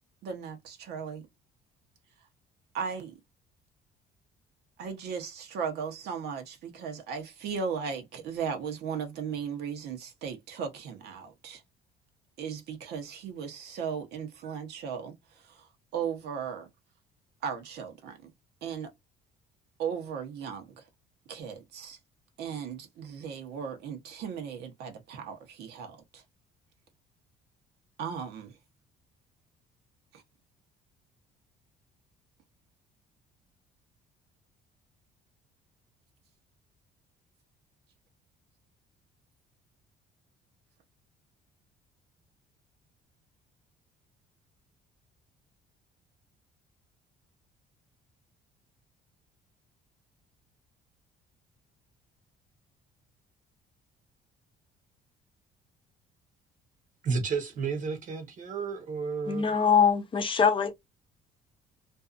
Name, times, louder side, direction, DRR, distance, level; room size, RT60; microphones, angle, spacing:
voice 1, 0.2-1.3 2.7-3.2 4.8-11.6 12.4-16.7 17.4-18.3 18.6-18.9 19.8-20.9 21.3-22.0 22.4-26.2 28.0-28.6 30.1-30.2, right 6 dB, 75° right, 0.9 m, -37 dB
voice 2, 57.0-59.5, right 5 dB, 50° right, 0.9 m, -32 dB
voice 3, 59.3-60.7, left 6 dB, 30° left, 0.6 m, -23 dB
2.6 x 2.3 x 2.4 m
cardioid pair, 110°, 17 cm